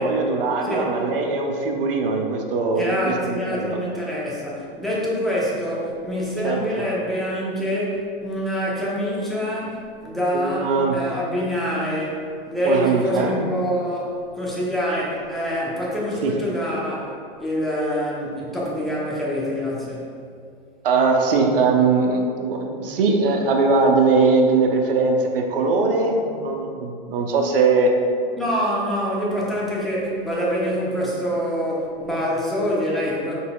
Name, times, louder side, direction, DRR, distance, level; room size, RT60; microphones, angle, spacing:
voice 1, 0.0-3.8 6.4-6.9 10.3-11.0 12.6-13.4 16.2-16.3 20.8-27.9, right 4 dB, 70° right, 2 dB, 0.7 m, -21 dB
voice 2, 2.7-12.2 12.5-20.1 28.3-33.3, equal, ahead, -6 dB, 0.7 m, -25 dB
4.9 x 4.1 x 2.3 m, 2.2 s
hypercardioid pair, 120°, 29 cm